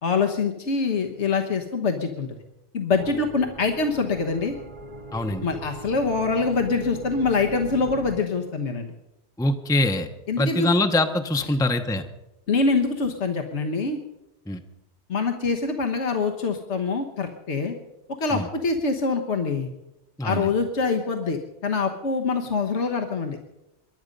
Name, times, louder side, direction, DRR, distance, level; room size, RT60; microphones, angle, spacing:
voice 1, 0.0-2.4 2.7-4.6 5.4-8.9 10.3-10.7 12.5-14.0 15.1-17.7 18.2-19.7 20.2-23.4, left 4 dB, 85° left, 4 dB, 1.5 m, -25 dB
sound 1, 3.0-8.2, right 3 dB, 40° right, 1.0 m, -40 dB
voice 2, 5.1-5.5 9.4-10.1 10.4-12.0 14.5-14.6 18.3-18.5 20.2-20.5, left 2 dB, 5° left, 6 dB, 0.7 m, -23 dB
24.0 x 11.0 x 5.3 m, 0.91 s
omnidirectional pair, 1.1 m